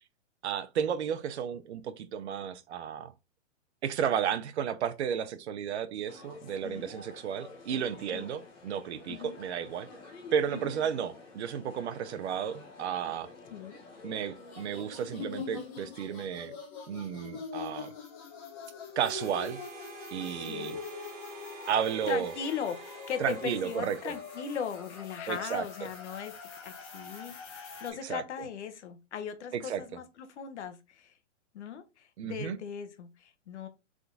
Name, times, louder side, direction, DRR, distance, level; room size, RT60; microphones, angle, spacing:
voice 1, 0.4-3.1 3.8-9.9 10.3-13.3 14.0-16.5 16.9-17.9 19.0-19.6 20.1-20.8 21.7-22.3 23.2-24.1 25.3-25.7 28.0-28.2 29.7-29.8 32.2-32.6, right 8 dB, 60° right, 0.7 m, -33 dB
sound 1, 6.1-16.5, left 3 dB, 10° left, 0.5 m, -50 dB
voice 2, 9.1-9.4 10.5-10.7 13.5-13.8 20.3-20.8 22.1-31.1 31.5-33.7, left 7 dB, 60° left, 1.1 m, -39 dB
sound 2, 14.3-27.9, left 5 dB, 25° left, 1.3 m, -44 dB
Harmonica, 19.0-25.4, right 2 dB, 30° right, 0.9 m, -47 dB
3.7 x 3.5 x 3.9 m
hypercardioid pair, 155°, 38 cm